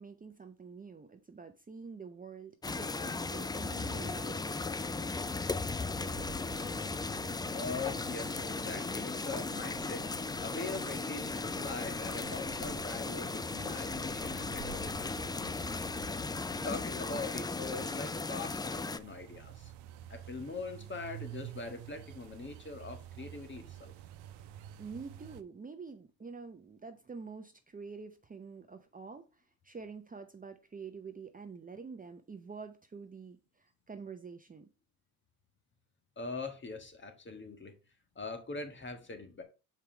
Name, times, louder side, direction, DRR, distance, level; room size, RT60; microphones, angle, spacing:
voice 1, 0.0-5.5 24.8-34.7, right 5 dB, 20° right, 0.8 m, -47 dB
sound 1, 2.6-19.0, left 3 dB, 10° left, 0.3 m, -36 dB
sound 2, 6.0-25.4, right 11 dB, 80° right, 0.8 m, -50 dB
voice 2, 7.5-10.1 10.4-15.8 16.6-19.7 20.1-23.9 36.2-37.7 38.1-39.4, left 3 dB, 30° left, 1.7 m, -42 dB
5.9 x 4.8 x 4.5 m
supercardioid pair, 80°, 40 cm